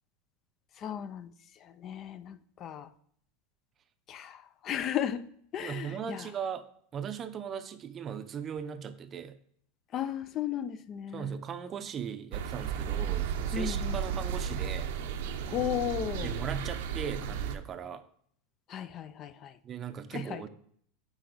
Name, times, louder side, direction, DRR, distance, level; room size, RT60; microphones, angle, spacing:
voice 1, 0.7-2.9 4.1-5.3 5.5-6.3 9.9-11.4 13.5-14.0 15.5-16.3 18.7-19.6 20.1-20.5, left 10 dB, 35° left, 0.4 m, -35 dB
voice 2, 5.6-6.7 6.9-9.4 11.1-14.9 16.2-18.0 19.6-20.5, right 7 dB, 30° right, 0.6 m, -38 dB
sound 1, 12.3-17.6, right 7 dB, 75° right, 0.7 m, -33 dB
8.9 x 4.1 x 3.9 m
supercardioid pair, 130°, 0 cm